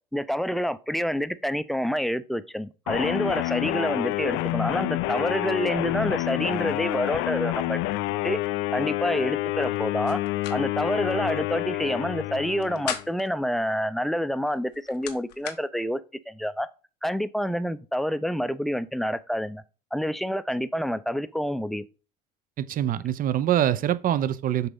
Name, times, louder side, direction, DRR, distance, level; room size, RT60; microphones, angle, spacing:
voice 1, 0.1-7.8 8.2-8.4 8.7-10.2 10.5-16.0 16.3-16.7 17.0-19.6 19.9-21.8, equal, ahead, 0.6 m, -28 dB
sound 1, 2.9-13.1, left 17 dB, 65° left, 0.5 m, -28 dB
sound 2, 10.1-10.6 10.9-11.0 12.5-13.3 14.5-15.6, left 10 dB, 85° left, 1.0 m, -36 dB
voice 2, 22.6-24.7, right 11 dB, 45° right, 0.7 m, -24 dB
6.8 x 3.9 x 5.5 m
hypercardioid pair, 80°, 20 cm